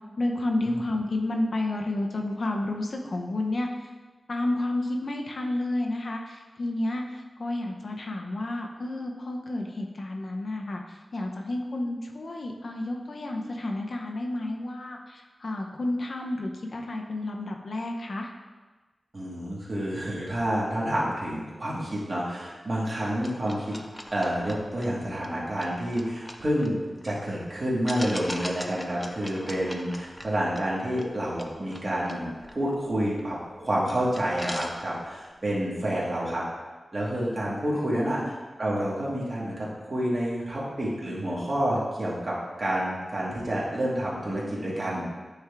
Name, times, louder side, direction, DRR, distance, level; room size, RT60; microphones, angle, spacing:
voice 1, 0.2-3.7 4.3-18.3 37.7-38.3, left 2 dB, 55° left, 1 dB, 0.7 m, -31 dB
voice 2, 19.1-23.7 24.1-36.4 36.9-38.2 38.6-45.1, right 1 dB, 40° right, -6 dB, 1.8 m, -29 dB
sound 1, 23.2-27.2 27.9-33.5 33.8-33.9 34.2-35.3, left 1 dB, 15° left, 0.5 m, -41 dB
8.9 x 3.5 x 3.5 m, 1.3 s
wide cardioid pair, 105°, 0 cm